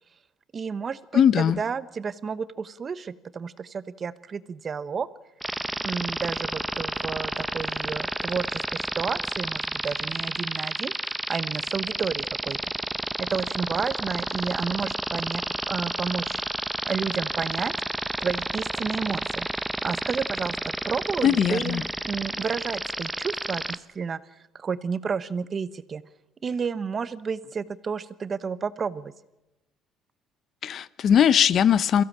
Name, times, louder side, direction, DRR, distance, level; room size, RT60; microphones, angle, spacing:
voice 1, 0.5-5.1 5.8-12.6 13.2-15.4 15.7-16.4 16.8-17.7 18.2-19.5 19.8-24.2 24.5-26.0 26.4-29.1, right 6 dB, 35° right, 15 dB, 0.9 m, -31 dB
voice 2, 1.1-1.6 21.2-21.8 30.6-32.0, left 9 dB, 55° left, 18 dB, 0.6 m, -20 dB
sound 1, 5.4-23.8, right 1 dB, 5° right, 0.8 m, -30 dB
22.5 x 16.0 x 7.3 m, 0.96 s
cardioid pair, 100°, 0 cm